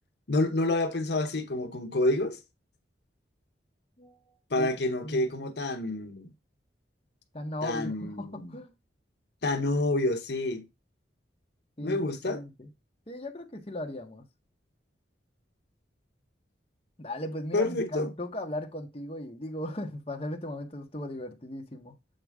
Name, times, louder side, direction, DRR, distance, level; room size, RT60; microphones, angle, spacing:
voice 1, 0.3-2.4 4.5-6.3 7.6-8.5 9.4-10.7 11.8-12.4 17.5-18.1, left 2 dB, 60° left, 1.0 m, -28 dB
voice 2, 4.0-4.7 5.0-5.5 7.3-8.7 11.8-12.7 13.1-14.2 17.0-21.9, left 1 dB, 30° left, 1.0 m, -37 dB
7.8 x 4.6 x 3.5 m
head